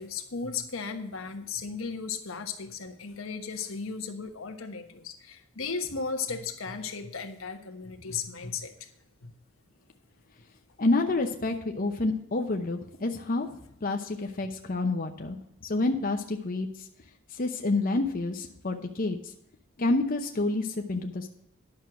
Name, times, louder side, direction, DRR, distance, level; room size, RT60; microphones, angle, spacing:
voice 1, 0.0-8.7 9.2-9.3, left 5 dB, 85° left, 5 dB, 1.3 m, -35 dB
voice 2, 10.8-13.5 13.8-15.4 15.6-16.7 17.3-19.2 19.8-21.3, left 2 dB, 45° left, 4 dB, 0.8 m, -28 dB
10.5 x 6.3 x 6.2 m, 0.77 s
head